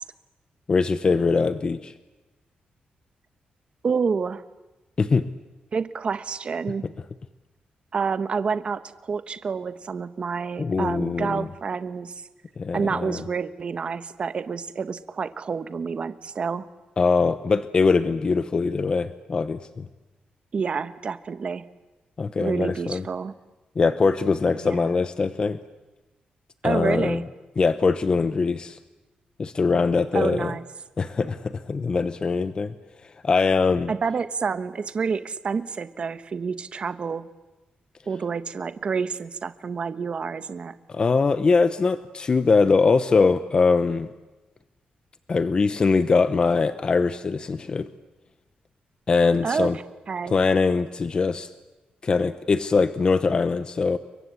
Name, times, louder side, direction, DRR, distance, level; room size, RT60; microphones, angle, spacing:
voice 1, 0.7-1.9 5.0-5.3 10.6-11.5 12.6-13.2 17.0-19.9 22.2-23.0 23.8-25.6 26.6-27.2 27.6-28.8 29.4-30.5 31.0-32.7 33.2-33.9 40.9-44.1 45.3-47.9 49.1-49.8 50.3-51.5 52.0-54.0, left 4 dB, 30° left, 12 dB, 0.9 m, -22 dB
voice 2, 3.8-4.4 5.7-6.8 7.9-12.1 12.7-16.7 20.5-21.6 22.4-23.3 24.6-24.9 26.6-27.2 30.1-30.6 33.9-37.3 38.1-40.8 49.4-50.4, right 5 dB, 35° right, 12 dB, 1.2 m, -28 dB
29.5 x 23.5 x 8.5 m, 1.1 s
wide cardioid pair, 180°, 3 cm